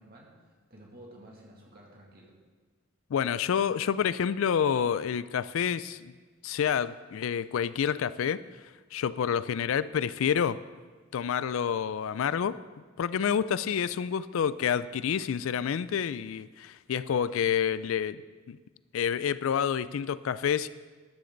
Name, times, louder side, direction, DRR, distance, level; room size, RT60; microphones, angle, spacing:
voice 1, 0.0-2.3 13.6-13.7, right 1 dB, 45° right, -2 dB, 2.4 m, -52 dB
voice 2, 3.1-6.1 6.4-8.4 8.9-10.6 11.1-12.6 13.0-18.2 18.5-18.6 18.9-20.7, left 8 dB, 70° left, 17 dB, 0.3 m, -28 dB
13.0 x 10.0 x 3.9 m, 1.4 s
head